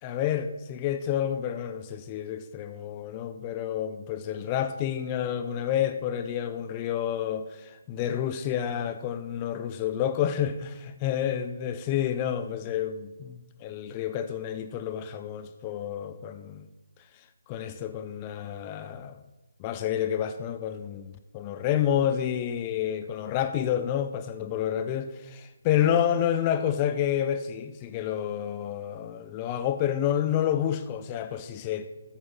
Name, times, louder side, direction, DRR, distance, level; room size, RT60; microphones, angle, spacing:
voice 1, 0.0-16.7 17.5-19.2 19.6-31.9, left 10 dB, 25° left, 0.5 m, -29 dB
12.5 x 7.8 x 3.8 m
figure-of-eight pair, 145°, 0 cm